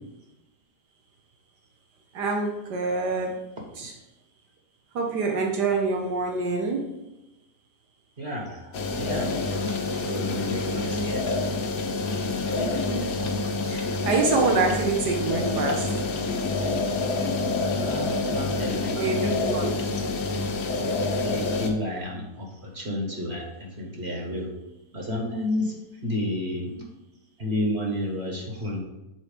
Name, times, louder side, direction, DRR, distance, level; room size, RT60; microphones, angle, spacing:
voice 1, 2.1-3.4 3.8-3.9 4.9-6.8 10.9-11.1 12.6-13.0 13.6-15.9 18.9-19.7, right 3 dB, 85° right, 1 dB, 1.5 m, -26 dB
voice 2, 8.2-9.3 9.7-11.2 12.3-12.4 17.7-19.6 21.2-24.5 24.9-25.8 26.0-26.7 27.4-28.8, left 1 dB, 40° right, 0 dB, 1.5 m, -31 dB
sound 1, 8.7-21.7, left 3 dB, 65° left, 1.3 m, -27 dB
7.5 x 4.4 x 5.0 m, 0.96 s
omnidirectional pair, 1.7 m